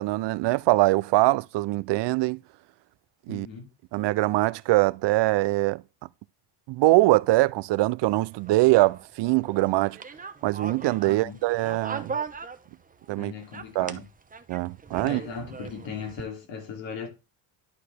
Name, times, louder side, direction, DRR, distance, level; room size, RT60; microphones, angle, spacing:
voice 1, 0.0-2.4 3.3-3.5 3.9-5.8 6.7-10.0 10.4-12.1 13.1-13.3 13.8-14.0 14.5-15.2, right 19 dB, 70° right, 0.5 m, -23 dB
voice 2, 3.3-3.7 11.1-11.4 13.2-14.0 15.0-17.1, left 5 dB, 85° left, 2.8 m, -38 dB
sound 1, 8.1-13.1 13.4-16.2, right 5 dB, 20° right, 0.8 m, -39 dB
11.5 x 4.8 x 3.3 m
cardioid pair, 120°, 44 cm